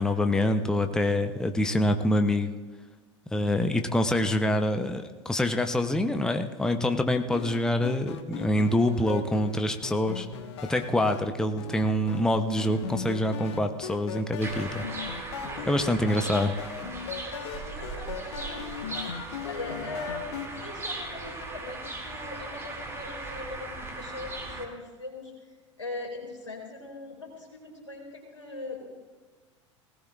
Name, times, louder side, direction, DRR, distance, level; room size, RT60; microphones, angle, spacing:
voice 1, 0.0-2.5 3.3-10.3 10.6-14.9 15.7-16.5, left 1 dB, 5° left, 7 dB, 0.7 m, -26 dB
sound 1, 7.3-11.2 11.6-12.2 12.6-20.5, left 7 dB, 60° left, 1.3 m, -38 dB
sound 2, 14.4-24.6, right 2 dB, 15° right, 2.5 m, -38 dB
voice 2, 15.4-15.9 16.2-16.3 17.3-18.6 19.5-25.3 25.8-28.9, left 3 dB, 85° left, -1 dB, 3.6 m, -40 dB
20.0 x 17.5 x 2.4 m, 1.3 s
figure-of-eight pair, 80°, 16 cm